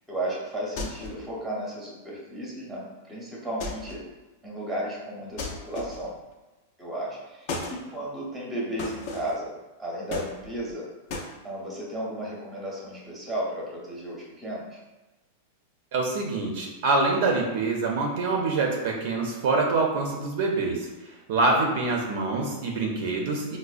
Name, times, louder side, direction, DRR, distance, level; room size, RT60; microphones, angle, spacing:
voice 1, 0.1-4.0 4.4-6.2 6.8-9.5 9.8-10.9 11.4-14.8, right 1 dB, 5° right, -4 dB, 0.8 m, -34 dB
sound 1, 0.8-1.3 3.6-4.1 5.4-6.2 7.5-7.8 8.8-9.4 10.1-10.7 11.1-11.3, left 3 dB, 40° left, 0.5 m, -35 dB
voice 2, 15.9-20.9 21.3-23.6, right 3 dB, 50° right, 0 dB, 0.5 m, -25 dB
4.9 x 2.1 x 2.4 m, 1.1 s
supercardioid pair, 165°, 0 cm